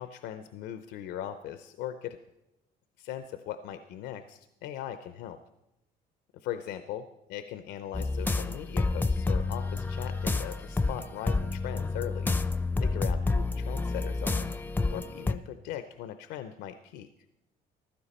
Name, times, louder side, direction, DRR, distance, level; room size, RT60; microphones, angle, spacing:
voice 1, 0.0-2.2 3.0-5.4 6.3-12.3 12.8-14.5 14.9-17.1, left 11 dB, 90° left, 10 dB, 0.6 m, -39 dB
sound 1, 7.9-15.4, left 3 dB, 10° left, 0.4 m, -29 dB
15.0 x 12.0 x 4.2 m, 0.92 s
cardioid pair, 110°, 17 cm